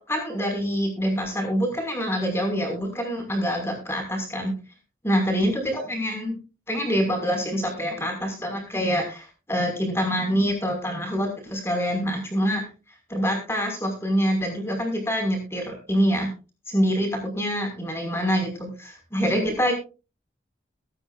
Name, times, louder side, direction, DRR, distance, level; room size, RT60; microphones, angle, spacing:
voice 1, 0.0-4.5 5.0-6.4 6.7-12.6 13.1-16.3 16.7-19.7, equal, 15° left, 2 dB, 5.4 m, -25 dB
23.0 x 10.0 x 2.5 m, 0.33 s
head